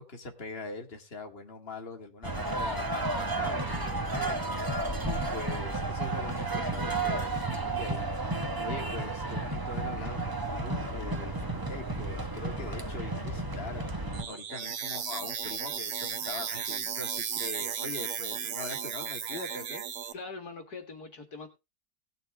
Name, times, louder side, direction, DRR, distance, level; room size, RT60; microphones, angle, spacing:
voice 1, 0.0-8.2 8.6-19.8, left 3 dB, 35° left, 3 dB, 2.3 m, -42 dB
sound 1, 2.2-14.2, right 2 dB, 15° right, 1.2 m, -32 dB
sound 2, 14.1-20.1, right 7 dB, 50° right, 1.1 m, -35 dB
voice 2, 20.1-21.5, left 3 dB, 65° left, 6 dB, 2.4 m, -43 dB
18.5 x 6.8 x 3.4 m, 0.25 s
omnidirectional pair, 1.8 m